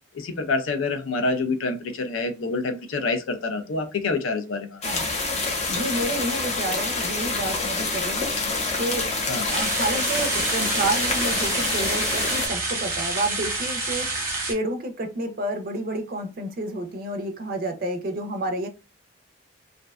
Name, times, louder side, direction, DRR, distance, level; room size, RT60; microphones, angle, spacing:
voice 1, 0.1-4.8 9.3-9.4, left 3 dB, 80° left, 8 dB, 0.4 m, -27 dB
sound 1, 4.8-12.5, left 3 dB, 35° left, 0.5 m, -27 dB
voice 2, 4.8-5.4 5.7-9.1 9.4-18.7, right 1 dB, 45° right, 6 dB, 0.4 m, -30 dB
sound 2, 9.5-14.5, right 2 dB, 15° right, 0.7 m, -28 dB
2.5 x 2.1 x 2.3 m, 0.29 s
head